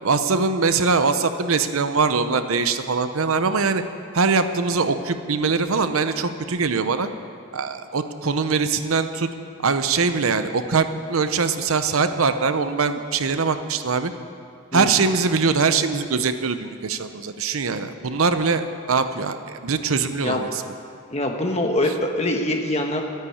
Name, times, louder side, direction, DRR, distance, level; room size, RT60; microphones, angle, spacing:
voice 1, 0.0-3.8 4.1-7.1 7.5-9.3 9.6-14.1 14.7-20.6 21.8-21.9, right 4 dB, 80° right, 10 dB, 0.8 m, -22 dB
voice 2, 14.7-15.0 20.2-20.4 21.1-23.0, left 1 dB, 30° left, 2 dB, 1.3 m, -24 dB
13.0 x 10.5 x 8.6 m, 2.4 s
head